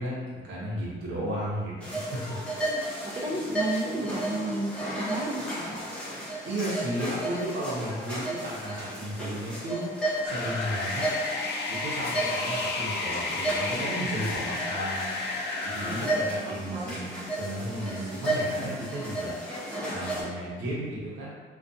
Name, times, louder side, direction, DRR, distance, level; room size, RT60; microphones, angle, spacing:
voice 1, 0.0-2.4 6.4-9.8 10.2-11.1 11.7-15.2 15.6-19.4 19.9-21.3, right 1 dB, 75° right, -6 dB, 0.8 m, -34 dB
sound 1, 1.8-20.2, right 1 dB, 5° left, 0.8 m, -33 dB
voice 2, 3.0-5.9 14.2-14.3 15.8-17.0, right 1 dB, 25° right, -2 dB, 0.5 m, -33 dB
sound 2, 10.3-16.1, left 3 dB, 60° left, 0.4 m, -32 dB
2.4 x 2.2 x 2.6 m, 1.5 s
cardioid pair, 90°, 20 cm